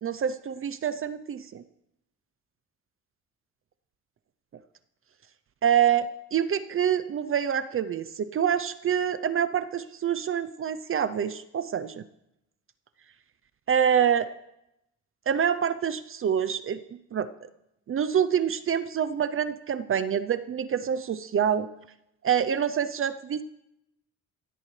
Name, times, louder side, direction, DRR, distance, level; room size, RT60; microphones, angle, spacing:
voice 1, 0.0-1.6 5.6-12.0 13.7-14.3 15.3-16.8 17.1-17.3 17.9-21.7 22.2-23.4, right 8 dB, 45° right, 13 dB, 0.6 m, -26 dB
16.5 x 16.0 x 3.3 m, 0.85 s
cardioid pair, 90°, 30 cm